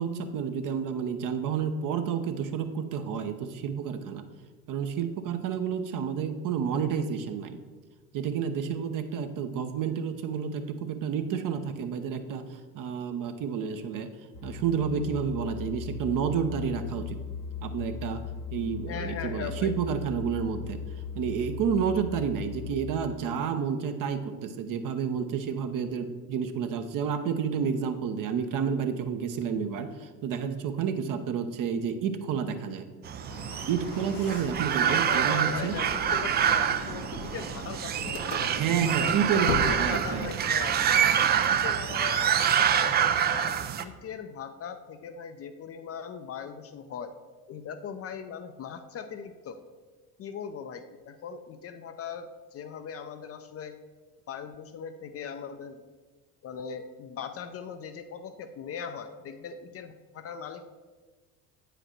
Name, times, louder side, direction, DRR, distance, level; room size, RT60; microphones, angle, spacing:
voice 1, 0.0-4.2 4.7-7.6 8.1-12.4 12.7-14.1 14.4-17.2 17.6-18.2 18.5-20.8 21.1-32.9 33.7-35.7 38.5-40.3, right 7 dB, 45° right, 8 dB, 0.9 m, -30 dB
sound 1, 14.3-22.7, left 6 dB, 80° left, 1.1 m, -38 dB
voice 2, 18.8-19.7 34.8-39.1 39.6-41.0 41.5-47.2 47.5-49.7 50.2-53.8 54.3-55.8 56.4-60.7, left 7 dB, 30° left, 8 dB, 0.5 m, -39 dB
sound 2, 33.0-43.8, right 8 dB, 25° right, 0.4 m, -26 dB
sound 3, 33.3-40.4, left 6 dB, 60° left, 0.8 m, -40 dB
8.5 x 5.1 x 4.4 m, 1.4 s
hypercardioid pair, 70°, 46 cm